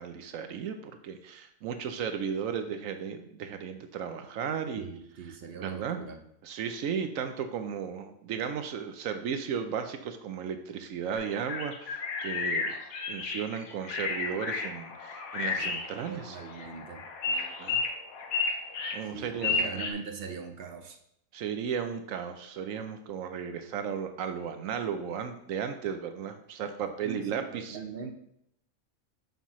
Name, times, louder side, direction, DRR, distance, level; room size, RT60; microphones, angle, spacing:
voice 1, 0.0-4.8 5.3-6.0 6.4-12.8 13.1-16.4 17.3-17.8 18.9-19.7 21.3-27.8, right 7 dB, 75° right, 8 dB, 1.0 m, -35 dB
voice 2, 4.8-6.2 15.4-15.7 16.1-17.0 19.1-21.0 27.0-28.1, right 5 dB, 55° right, 5 dB, 0.7 m, -41 dB
sound 1, 11.2-19.9, left 4 dB, 85° left, 1.3 m, -33 dB
7.2 x 5.6 x 3.0 m, 0.74 s
omnidirectional pair, 1.4 m